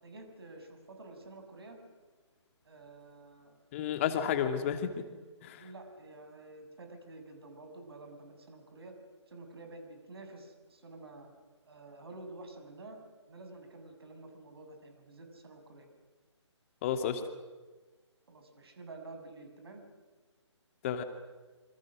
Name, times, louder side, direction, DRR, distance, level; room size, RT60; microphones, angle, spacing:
voice 1, 0.0-1.8 2.6-3.6 4.5-4.8 5.6-8.9 9.3-11.3 11.6-13.0 13.3-15.9 18.3-19.8, right 2 dB, 55° right, 5 dB, 6.8 m, -50 dB
voice 2, 3.7-4.9 5.4-5.6 16.8-17.2 20.8-21.0, left 8 dB, 25° left, 8 dB, 2.4 m, -31 dB
27.5 x 26.0 x 6.5 m, 1.3 s
figure-of-eight pair, 145°, 15 cm